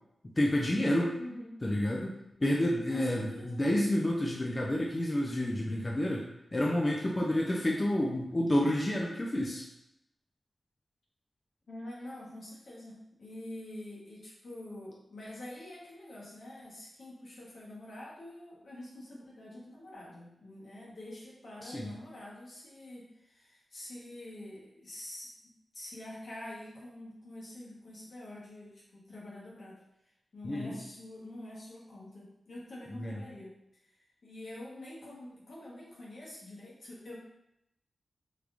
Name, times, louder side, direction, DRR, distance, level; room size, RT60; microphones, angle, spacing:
voice 1, 0.2-1.1 1.6-2.1 2.4-6.2 6.5-9.6 21.6-21.9 30.4-30.8 32.9-33.2, left 1 dB, 35° left, -3 dB, 0.6 m, -29 dB
voice 2, 1.2-1.6 2.9-3.6 11.7-25.3 25.7-29.8 30.3-33.5 34.2-37.2, left 1 dB, 75° left, -6 dB, 1.2 m, -46 dB
3.4 x 3.1 x 2.5 m, 0.82 s
cardioid pair, 50°, 0 cm